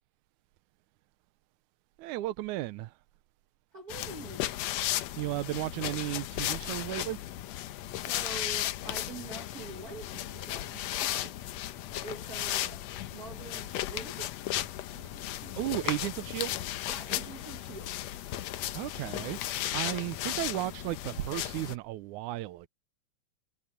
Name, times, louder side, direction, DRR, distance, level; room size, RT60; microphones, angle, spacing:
voice 1, 2.0-2.9 5.2-7.2 15.6-16.5 18.7-22.7, right 16 dB, 85° right, 2.1 m, -34 dB
voice 2, 3.7-4.5 7.9-11.4 12.0-12.9 13.1-14.3 14.9-15.9 16.9-18.1, right 5 dB, 55° right, 1.0 m, -46 dB
sound 1, 3.9-21.8, left 13 dB, 70° left, 1.8 m, -35 dB
omnidirectional pair, 3.4 m